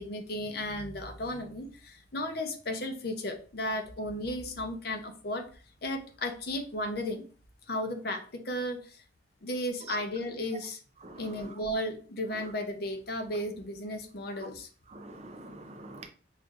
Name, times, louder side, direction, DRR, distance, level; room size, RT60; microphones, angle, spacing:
voice 1, 0.0-5.4 5.8-7.2 7.7-9.0 9.4-10.8 11.2-14.7, left 1 dB, 55° left, 0.6 m, -34 dB
voice 2, 11.0-11.6 12.3-12.5 14.4-14.5 14.9-16.1, right 2 dB, 35° right, 0.4 m, -45 dB
6.2 x 2.5 x 2.4 m
head